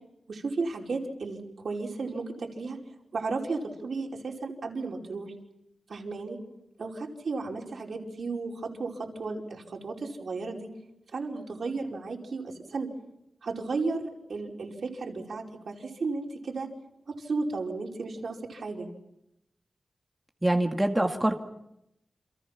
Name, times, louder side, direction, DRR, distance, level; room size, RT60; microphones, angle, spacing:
voice 1, 0.3-2.8 3.1-5.3 5.9-6.4 6.8-10.7 11.1-12.9 13.4-16.7 17.1-18.9, right 3 dB, 75° right, 0 dB, 5.1 m, -34 dB
voice 2, 20.4-21.4, right 1 dB, 15° right, 3 dB, 2.0 m, -24 dB
29.0 x 28.0 x 5.9 m, 0.84 s
wide cardioid pair, 120°, 0 cm